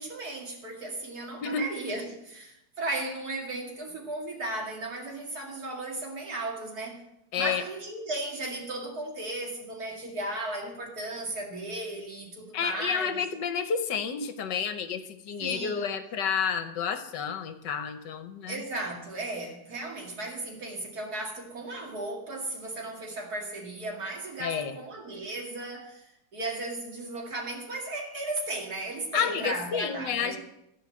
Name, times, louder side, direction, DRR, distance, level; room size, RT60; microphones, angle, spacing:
voice 1, 0.0-7.0 7.4-13.2 15.4-15.9 18.4-26.1 26.3-30.4, right 2 dB, 50° right, 0 dB, 2.7 m, -35 dB
voice 2, 12.5-18.6 24.4-24.8 29.1-30.4, left 7 dB, 70° left, 9 dB, 1.5 m, -30 dB
14.5 x 5.2 x 7.6 m, 0.84 s
omnidirectional pair, 2.1 m